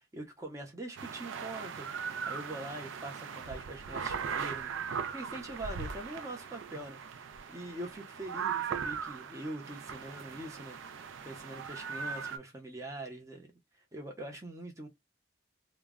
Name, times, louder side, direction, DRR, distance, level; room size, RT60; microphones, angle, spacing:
voice 1, 0.0-7.0 7.5-13.5 13.9-14.9, right 1 dB, 15° right, 0.6 m, -43 dB
sound 1, 1.0-12.4, right 6 dB, 85° right, 0.4 m, -39 dB
2.1 x 2.0 x 3.5 m
head